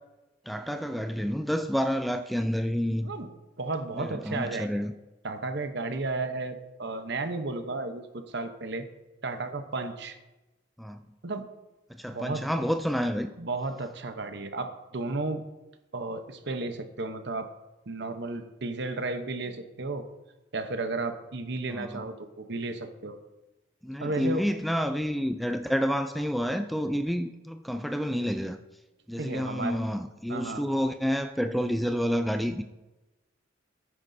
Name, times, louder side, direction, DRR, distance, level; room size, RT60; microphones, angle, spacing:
voice 1, 0.5-3.1 4.0-4.9 10.8-11.0 11.9-13.3 21.7-22.0 23.8-28.6 29.1-32.6, equal, ahead, 8 dB, 0.3 m, -29 dB
voice 2, 3.6-4.7 5.2-8.9 9.2-10.2 11.2-11.5 12.0-12.7 13.4-15.4 15.9-17.5 17.9-20.1 20.5-23.2 24.0-24.5 29.2-29.8 30.3-30.6, right 3 dB, 60° right, 7 dB, 0.9 m, -33 dB
15.0 x 9.6 x 2.7 m, 1.0 s
head